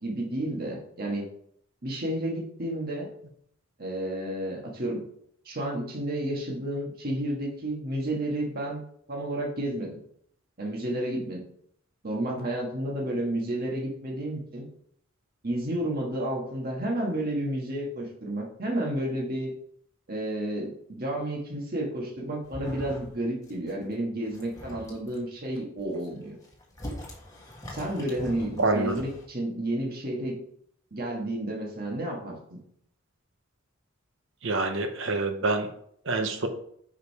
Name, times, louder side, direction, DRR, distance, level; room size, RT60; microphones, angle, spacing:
voice 1, 0.0-1.3 1.8-3.1 3.8-5.0 5.4-8.8 9.1-10.0 10.6-11.4 12.0-14.7 15.4-19.5 20.1-26.4 27.7-30.4 30.9-32.6, right 1 dB, 45° right, -2 dB, 1.6 m, -31 dB
sound 1, 22.4-23.2 23.4-23.8 24.2-25.2 25.8-29.3, equal, 15° left, 1.5 m, -42 dB
voice 2, 28.6-29.0 34.4-35.7 36.0-36.5, right 3 dB, 65° right, 6 dB, 0.9 m, -26 dB
5.2 x 5.0 x 4.8 m, 0.67 s
head